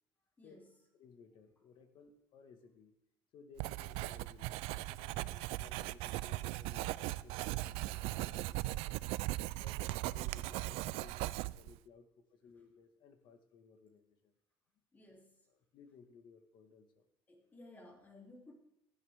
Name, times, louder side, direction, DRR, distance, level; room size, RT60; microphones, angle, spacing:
voice 1, 0.4-0.7 5.2-5.5 14.9-15.4 17.3-18.5, left 2 dB, 20° left, 0 dB, 2.9 m, -57 dB
voice 2, 0.9-2.9 3.3-5.3 5.6-9.1 9.6-14.3 15.5-17.1, left 5 dB, 55° left, 7 dB, 1.5 m, -60 dB
Writing, 3.6-11.8, right 18 dB, 90° right, 0.4 m, -39 dB
16.0 x 11.0 x 3.6 m, 0.85 s
cardioid pair, 135°, 9 cm